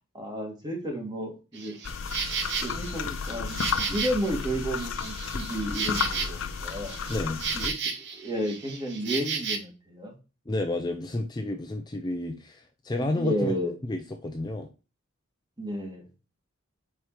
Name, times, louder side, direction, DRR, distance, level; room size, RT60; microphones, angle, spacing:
voice 1, 0.1-1.8 2.6-6.9 7.5-10.1 13.0-13.7 15.6-16.1, equal, 20° right, 1 dB, 1.8 m, -32 dB
Insect, 1.5-9.6, right 5 dB, 60° right, 0.9 m, -34 dB
sound 1, 1.8-7.7, left 6 dB, 70° left, 0.5 m, -33 dB
voice 2, 7.1-7.4 10.5-13.5 13.8-14.7, left 2 dB, 20° left, 4 dB, 0.5 m, -31 dB
4.9 x 4.4 x 4.7 m, 0.32 s
head